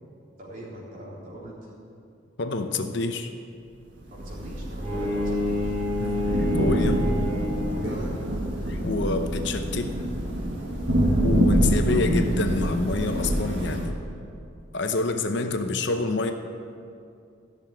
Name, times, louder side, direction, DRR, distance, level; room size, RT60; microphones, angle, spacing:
voice 1, 0.4-1.6 4.1-5.8 7.8-8.1, right 1 dB, 45° right, -5 dB, 3.7 m, -41 dB
voice 2, 2.4-3.3 6.0-7.0 8.7-10.0 11.2-14.0 14.7-16.3, left 3 dB, 60° left, 6 dB, 0.8 m, -28 dB
Thunder / Rain, 4.1-13.9, equal, 60° right, 1.7 m, -26 dB
Bowed string instrument, 4.8-8.0, left 2 dB, 5° left, 3.9 m, -28 dB
sound 1, 5.9-13.7, equal, 25° left, 3.1 m, -44 dB
15.0 x 6.8 x 9.2 m, 2.5 s
head